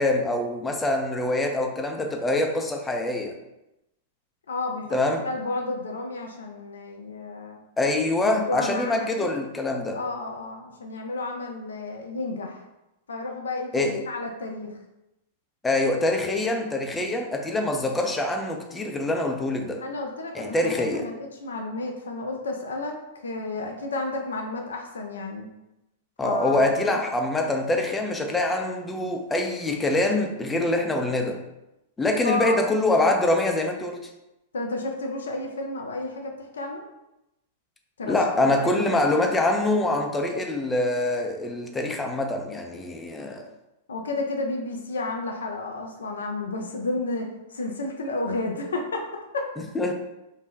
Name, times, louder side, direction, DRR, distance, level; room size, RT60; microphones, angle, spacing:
voice 1, 0.0-3.4 4.9-5.2 7.8-10.0 13.7-14.0 15.6-19.8 20.3-21.1 26.2-31.4 32.0-34.1 38.1-43.5 49.7-49.9, left 2 dB, 10° left, 2 dB, 0.5 m, -25 dB
voice 2, 4.5-5.0 5.2-7.6 8.2-9.4 9.9-12.6 13.1-14.8 19.8-25.5 26.2-27.0 32.2-32.6 34.5-36.8 38.0-38.8 43.9-49.5, left 2 dB, 85° left, 2 dB, 0.5 m, -32 dB
2.7 x 2.1 x 3.6 m, 0.92 s
hypercardioid pair, 110°, 0 cm